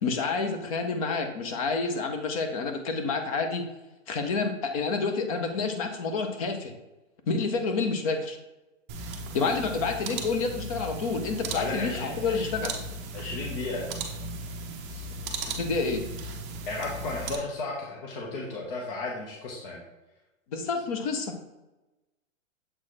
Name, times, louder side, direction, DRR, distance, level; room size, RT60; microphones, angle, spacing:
voice 1, 0.0-3.7 4.1-6.7 7.3-8.4 9.3-12.7 15.6-16.0 20.5-21.3, left 4 dB, 30° left, 6 dB, 0.6 m, -29 dB
sound 1, 8.9-17.3, right 2 dB, 20° right, 0.7 m, -36 dB
voice 2, 11.5-12.5 13.1-13.9 14.9-15.0 16.7-19.8, left 2 dB, 45° left, -2 dB, 1.3 m, -34 dB
7.4 x 3.9 x 3.3 m, 1.1 s
hypercardioid pair, 160°, 39 cm